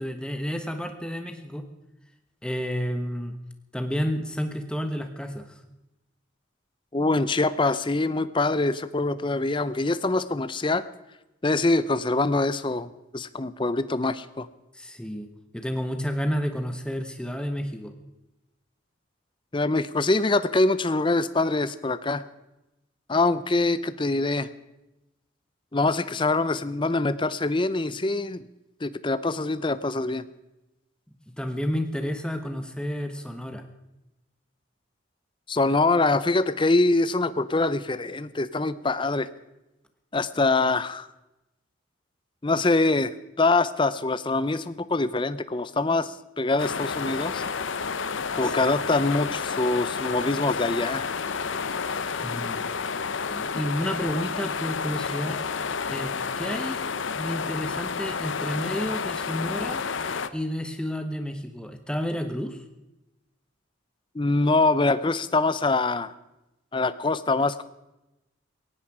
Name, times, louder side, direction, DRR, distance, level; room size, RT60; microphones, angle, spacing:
voice 1, 0.0-1.7 2.4-3.4 3.7-5.5 14.7-15.3 15.5-17.9 31.4-33.6 48.4-48.6 52.2-52.6 53.3-55.4 55.9-56.8 57.1-59.8 60.3-62.6, equal, 5° left, 7 dB, 1.2 m, -30 dB
voice 2, 6.9-10.8 11.4-14.5 19.5-22.2 23.1-24.5 25.7-28.4 28.8-30.2 35.5-39.3 40.1-41.1 42.4-47.4 48.3-51.1 64.1-66.1 66.7-67.6, left 2 dB, 25° left, 15 dB, 0.6 m, -24 dB
sound 1, 46.6-60.3, left 5 dB, 70° left, 0.8 m, -30 dB
18.0 x 16.0 x 4.9 m, 0.96 s
head